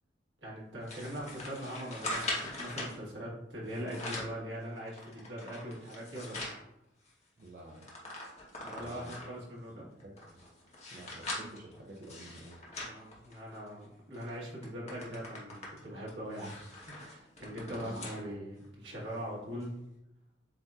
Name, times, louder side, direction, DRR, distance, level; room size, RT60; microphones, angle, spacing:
voice 1, 0.4-6.4 8.6-9.8 12.8-19.7, equal, 70° right, -5 dB, 1.6 m, -41 dB
sound 1, 0.9-3.0 3.7-4.4 4.9-6.6 7.1-7.2 7.4-9.4 10.0-13.7 14.1-14.3 14.6-18.2 18.6-18.7 19.6-19.7, left 2 dB, 35° left, 1.0 m, -42 dB
voice 2, 7.4-8.1 8.7-9.2 9.8-10.4 10.9-12.6 17.8-18.3, right 1 dB, 45° right, -3 dB, 0.5 m, -50 dB
7.5 x 2.6 x 2.3 m, 0.84 s
head